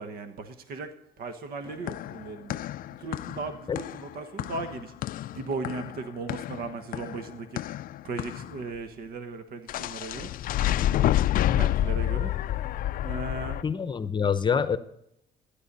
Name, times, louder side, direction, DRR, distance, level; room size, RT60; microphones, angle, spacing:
voice 1, 0.0-2.6 2.9-11.0 11.3-13.6, right 3 dB, 60° right, 9 dB, 1.3 m, -38 dB
sound 1, 1.7-8.6 9.7-13.6, left 13 dB, 55° left, 0.4 m, -29 dB
voice 2, 13.6-14.8, left 6 dB, 25° left, 12 dB, 0.8 m, -25 dB
14.5 x 10.0 x 5.4 m, 0.79 s
cardioid pair, 110°, 17 cm